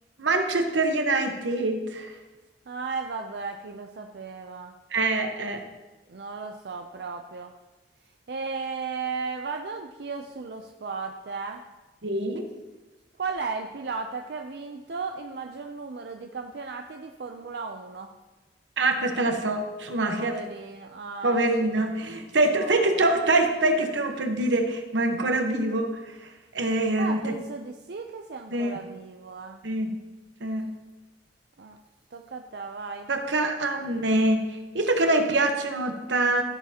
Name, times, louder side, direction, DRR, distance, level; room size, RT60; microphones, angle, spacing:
voice 1, 0.2-2.1 4.9-5.6 12.0-12.4 18.8-20.4 21.2-25.9 26.5-27.4 28.5-28.7 29.6-29.9 30.4-30.7 33.1-34.4 34.7-36.4, right 2 dB, 85° right, 4 dB, 1.1 m, -24 dB
voice 2, 2.7-4.7 6.1-7.5 8.3-11.6 13.2-18.1 20.2-21.8 22.5-23.0 27.0-29.6 31.6-31.8 32.1-33.1, right 4 dB, 65° right, 3 dB, 0.5 m, -35 dB
14.5 x 7.1 x 2.9 m, 1.1 s
head